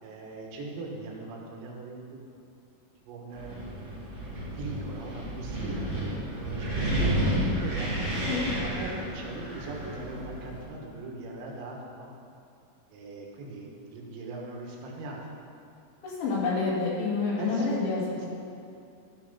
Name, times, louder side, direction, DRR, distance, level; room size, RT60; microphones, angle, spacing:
voice 1, 0.0-2.5 3.0-4.0 4.3-7.1 7.6-8.0 8.6-12.1 12.9-15.2 17.4-17.8 18.1-18.3, right 3 dB, 80° right, -1 dB, 3.6 m, -40 dB
Wind, 3.3-10.6, right 1 dB, 35° right, 0.8 m, -31 dB
voice 2, 16.0-18.3, left 4 dB, 80° left, -6 dB, 4.5 m, -28 dB
13.0 x 5.7 x 5.4 m, 2.5 s
omnidirectional pair, 5.1 m